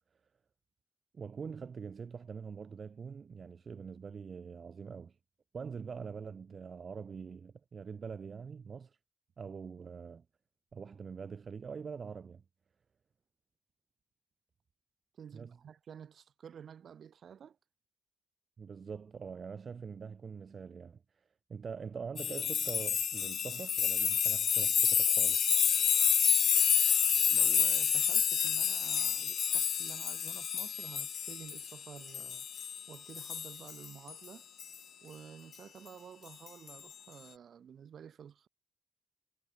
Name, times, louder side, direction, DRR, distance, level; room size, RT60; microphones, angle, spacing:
voice 1, 1.1-5.2 5.5-9.0 9.4-10.2 10.7-12.4 15.3-15.6 18.6-21.2 21.5-25.6, right 6 dB, 45° right, 2.6 m, -44 dB
voice 2, 15.1-17.6 27.3-32.5 32.9-34.5 35.0-38.5, right 8 dB, 70° right, 5.0 m, -51 dB
sound 1, 22.2-32.8 33.1-34.1 34.6-34.7 36.5-36.7, left 8 dB, 70° left, 1.0 m, -29 dB
wide cardioid pair, 130°, 0 cm